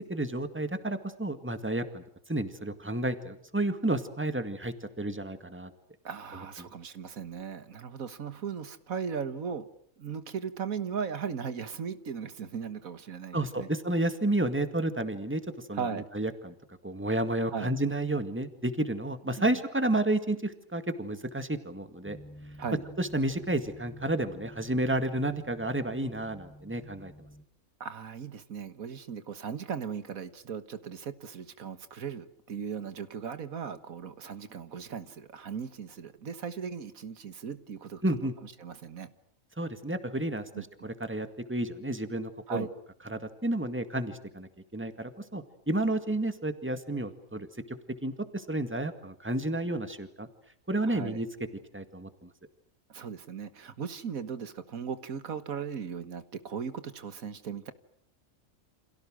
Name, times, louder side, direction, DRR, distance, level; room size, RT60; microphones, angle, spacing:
voice 1, 0.1-2.0 2.3-5.7 6.6-6.7 13.3-15.4 15.7-15.9 16.1-16.5 16.8-22.2 23.0-27.1 38.0-38.3 39.6-40.5 40.8-42.6 43.1-47.8 48.0-50.3 50.7-51.3 51.7-52.3, right 1 dB, 10° right, 9 dB, 2.0 m, -31 dB
voice 2, 6.0-9.7 10.0-13.7 15.7-16.1 17.5-17.8 19.4-19.5 22.6-22.8 27.8-39.1 40.5-40.9 42.5-42.7 50.8-51.2 52.9-57.7, right 6 dB, 85° right, 12 dB, 1.9 m, -37 dB
sound 1, 22.0-27.4, equal, 10° left, 1.8 m, -49 dB
29.5 x 27.5 x 6.4 m, 0.64 s
omnidirectional pair, 1.4 m